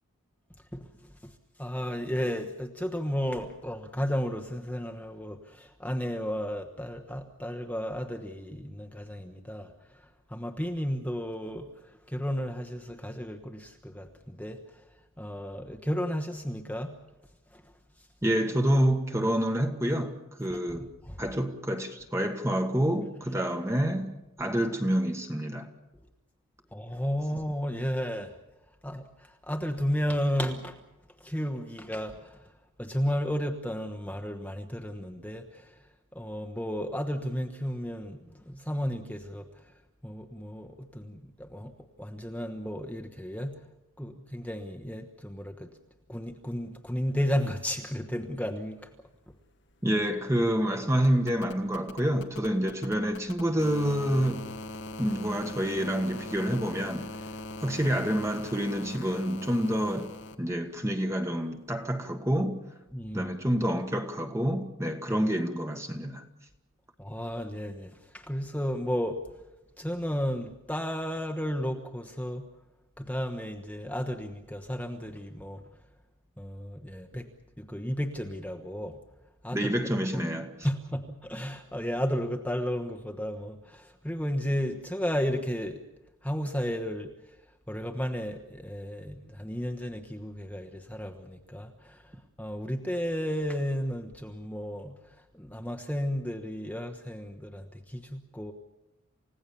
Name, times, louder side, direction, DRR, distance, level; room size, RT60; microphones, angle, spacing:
voice 1, 0.7-14.9 15.2-16.9 17.5-17.6 18.0-18.1 20.5-21.2 26.7-28.3 28.8-30.8 31.2-32.5 32.8-41.7 42.0-43.6 44.0-45.7 46.1-48.9 49.3-49.4 62.9-63.3 67.0-69.2 69.8-72.5 73.0-75.6 76.4-77.3 77.6-79.0 79.4-79.7 80.6-85.8 86.2-98.5, equal, 5° left, 1.2 m, -33 dB
voice 2, 18.2-20.9 21.2-25.7 49.8-54.4 55.0-57.1 57.6-60.1 60.4-62.6 63.1-66.2 79.5-80.5, equal, 15° right, 1.5 m, -28 dB
sound 1, 49.1-49.2 49.4-60.4 61.8-61.9, left 2 dB, 55° left, 1.4 m, -42 dB
29.0 x 16.5 x 7.1 m
head